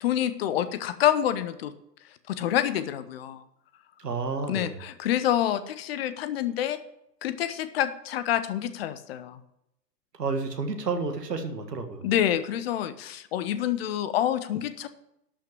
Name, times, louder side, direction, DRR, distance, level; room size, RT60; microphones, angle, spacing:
voice 1, 0.0-1.7 2.3-3.4 4.5-6.8 7.2-9.4 12.0-14.9, left 11 dB, 35° left, 12 dB, 0.9 m, -27 dB
voice 2, 4.0-4.8 10.2-12.1, right 4 dB, 70° right, 6 dB, 1.7 m, -30 dB
12.0 x 6.0 x 7.3 m, 0.80 s
figure-of-eight pair, 105°, 50 cm